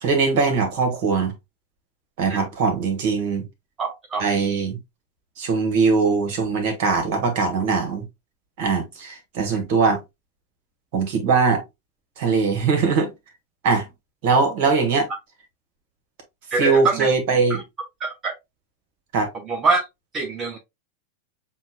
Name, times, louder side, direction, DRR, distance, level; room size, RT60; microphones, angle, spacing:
voice 1, 0.0-1.3 2.2-3.4 4.2-4.8 5.4-8.0 8.6-10.0 10.9-11.6 12.2-13.1 13.6-13.9 14.2-15.1 16.6-17.6 19.1-19.3, right 4 dB, 50° right, 1.5 m, -21 dB
voice 2, 3.8-4.3 16.5-17.1 18.0-18.3 19.5-19.8 20.1-20.6, right 3 dB, 25° right, 0.6 m, -24 dB
7.1 x 2.4 x 2.3 m
figure-of-eight pair, 90°, 0 cm